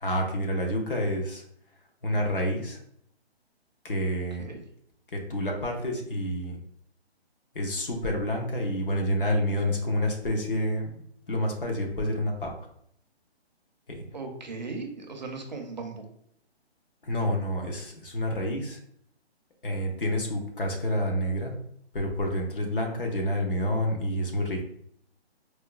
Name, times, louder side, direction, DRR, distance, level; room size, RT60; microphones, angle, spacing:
voice 1, 0.0-1.4 2.0-2.8 3.8-4.6 5.1-6.6 7.5-10.9 11.3-12.5 13.9-14.0 17.0-18.8 19.6-21.5 21.9-24.6, left 1 dB, 55° left, 2 dB, 0.8 m, -28 dB
voice 2, 14.1-16.1, right 3 dB, 45° right, 3 dB, 0.5 m, -37 dB
4.5 x 2.2 x 2.3 m, 0.69 s
hypercardioid pair, 170°, 33 cm